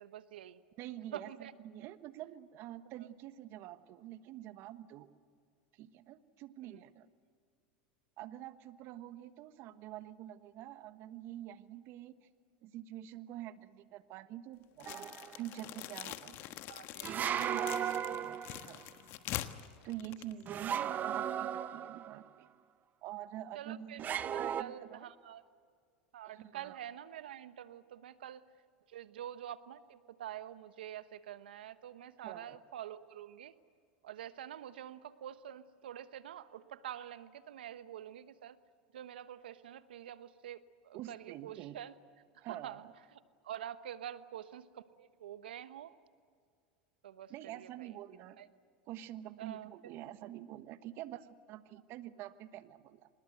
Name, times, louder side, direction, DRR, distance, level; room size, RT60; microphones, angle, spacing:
voice 1, 0.0-0.6 1.1-1.5 6.6-6.8 16.7-17.6 23.5-25.4 26.1-28.4 28.9-33.6 34.0-38.6 38.9-41.9 42.3-42.9 43.4-45.9 47.0-48.0 48.4-48.5 49.4-49.7, right 11 dB, 85° right, 13 dB, 1.1 m, -47 dB
voice 2, 0.8-5.1 5.7-7.1 8.2-12.1 12.6-15.1 15.4-16.4 17.0-18.8 19.8-22.5 23.0-24.1 24.4-25.1 26.2-26.8 32.2-32.6 40.9-41.8 42.4-42.9 47.3-48.4 48.9-53.1, right 13 dB, 50° right, 12 dB, 1.3 m, -47 dB
sound 1, 14.8-20.9, left 14 dB, 50° left, 1.3 m, -44 dB
sound 2, 14.9-15.4 17.0-18.8 20.5-22.2 24.0-24.6, right 9 dB, 35° right, 0.8 m, -36 dB
25.0 x 20.5 x 8.0 m, 2.1 s
hypercardioid pair, 105°, 5 cm